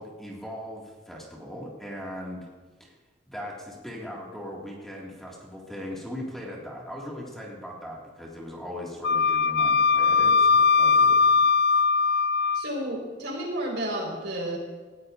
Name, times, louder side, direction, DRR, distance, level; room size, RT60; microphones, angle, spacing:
voice 1, 0.0-2.5 2.8-2.9 3.3-11.4, left 1 dB, ahead, -4 dB, 2.0 m, -39 dB
Wind instrument woodwind instrument, 9.0-12.7, left 5 dB, 60° left, 0.3 m, -20 dB
voice 2, 12.5-14.6, right 1 dB, 65° right, -1 dB, 4.4 m, -31 dB
18.5 x 15.5 x 2.6 m, 1.3 s
head